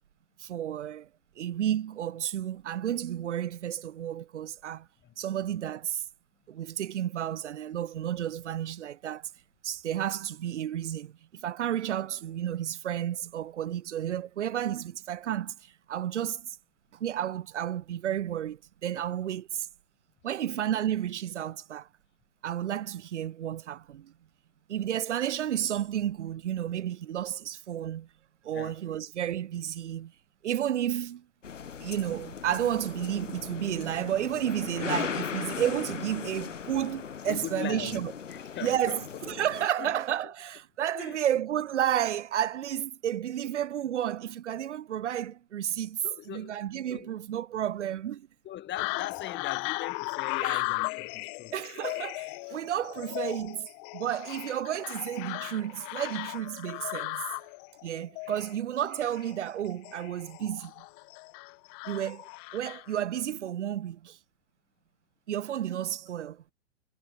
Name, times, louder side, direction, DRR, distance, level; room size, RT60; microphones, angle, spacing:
voice 1, 0.4-1.1 1.4-4.9 5.2-6.0 6.5-9.3 9.6-16.6 16.9-19.7 20.2-21.9 22.4-24.1 24.7-28.1 28.4-30.1 30.4-31.2 31.8-38.1 38.6-46.0 46.3-48.3 50.4-50.6 51.5-53.7 53.9-57.2 57.8-60.7 61.9-64.2 65.3-66.4, right 10 dB, 70° right, 2.4 m, -32 dB
sound 1, 31.4-39.7, left 7 dB, 85° left, 2.4 m, -38 dB
voice 2, 37.2-39.0 39.8-40.0 40.9-41.2 46.0-46.6 46.9-47.1 48.4-51.5, left 12 dB, 30° left, 6.3 m, -40 dB
sound 2, 48.8-63.0, left 38 dB, 45° left, 4.3 m, -36 dB
hypercardioid pair, 110°, 36 cm